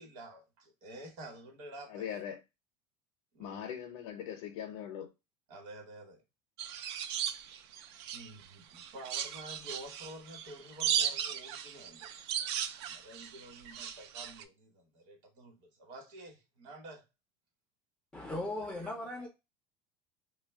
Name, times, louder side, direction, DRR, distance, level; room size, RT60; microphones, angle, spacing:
voice 1, 0.0-2.1 3.3-3.6 5.5-6.2 8.1-12.1 12.4-17.0, right 1 dB, 55° right, 1.1 m, -50 dB
voice 2, 1.9-2.4 3.4-5.1, left 9 dB, 75° left, 0.5 m, -40 dB
sound 1, 6.6-8.4 8.8-14.4, right 9 dB, 85° right, 0.4 m, -36 dB
voice 3, 18.1-19.3, left 1 dB, 5° left, 0.3 m, -38 dB
2.7 x 2.2 x 3.4 m
cardioid pair, 160°, 14 cm